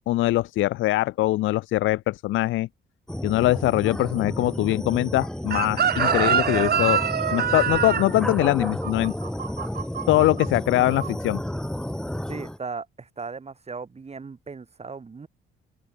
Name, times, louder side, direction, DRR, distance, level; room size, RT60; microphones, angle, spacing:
voice 1, 0.1-2.7 3.2-7.0 7.3-9.1 10.1-11.4, left 16 dB, 80° left, 0.5 m, -22 dB
sound 1, 3.1-12.6, left 1 dB, 5° left, 1.1 m, -31 dB
Chicken rooster, 5.5-10.5 10.7-11.1, right 8 dB, 50° right, 2.0 m, -25 dB
voice 2, 12.3-15.3, right 4 dB, 30° right, 4.6 m, -37 dB
open air
cardioid pair, 90°, 20 cm